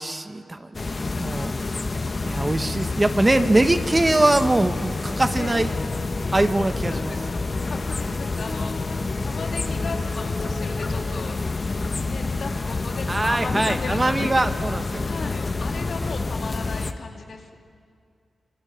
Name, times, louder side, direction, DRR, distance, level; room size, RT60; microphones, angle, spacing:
voice 1, 0.0-1.5 2.2-5.7 6.3-7.1 13.1-15.1, right 2 dB, 20° right, 9 dB, 1.0 m, -22 dB
sound 1, 0.7-16.9, left 3 dB, 35° left, 1.0 m, -28 dB
sound 2, 3.4-11.2, left 2 dB, 50° left, 3.2 m, -39 dB
voice 2, 5.4-5.8 6.9-7.4 7.7-8.7 9.2-11.4 12.1-17.6, left 4 dB, 70° left, 2 dB, 2.6 m, -36 dB
26.0 x 23.5 x 6.9 m, 2.2 s
wide cardioid pair, 105°, 0 cm